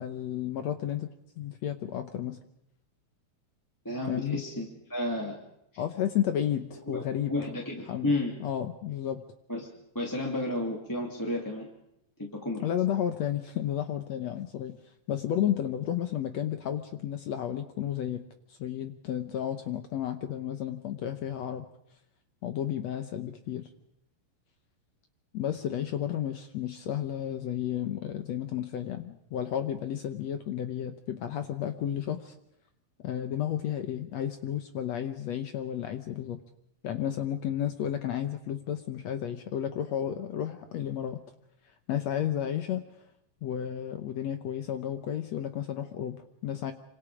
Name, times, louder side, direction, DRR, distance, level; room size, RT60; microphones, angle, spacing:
voice 1, 0.0-2.4 4.1-4.4 5.8-7.4 7.9-8.1 8.4-9.2 12.6-14.8 15.1-18.2 18.5-21.6 22.4-23.7 25.3-32.3 33.0-36.4 36.8-41.2 41.9-42.8 43.4-46.7, left 10 dB, 65° left, 8 dB, 1.7 m, -32 dB
voice 2, 3.8-5.4 6.9-8.3 9.5-9.7 9.9-11.7 12.2-12.6, left 1 dB, 5° left, -2 dB, 2.4 m, -32 dB
26.0 x 25.5 x 5.1 m, 0.76 s
omnidirectional pair, 4.1 m